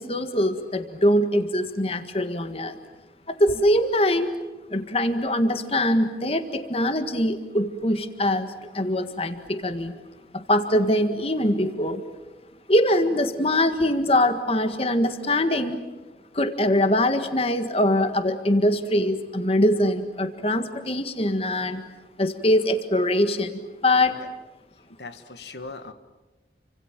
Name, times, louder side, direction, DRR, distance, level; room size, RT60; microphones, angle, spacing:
voice 1, 0.0-2.8 3.3-4.3 4.7-9.9 10.3-12.0 12.7-15.8 16.3-21.8 22.2-24.2, left 1 dB, 35° left, 9 dB, 1.7 m, -23 dB
voice 2, 25.0-25.9, left 3 dB, 75° left, 10 dB, 1.6 m, -39 dB
29.5 x 25.5 x 7.5 m, 1.2 s
head